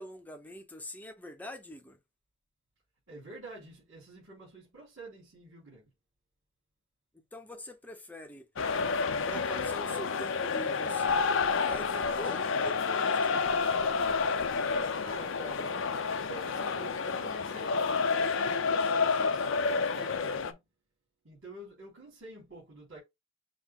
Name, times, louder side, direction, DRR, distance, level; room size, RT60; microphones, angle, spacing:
voice 1, 0.0-2.0 7.1-8.5 9.3-11.2 11.7-13.4, left 1 dB, 5° left, 0.7 m, -44 dB
voice 2, 3.1-5.9 15.0-16.0 16.3-20.6 21.2-23.0, right 2 dB, 60° right, 3.2 m, -48 dB
sound 1, 8.6-20.5, left 5 dB, 60° left, 0.6 m, -29 dB
6.3 x 2.1 x 3.6 m
head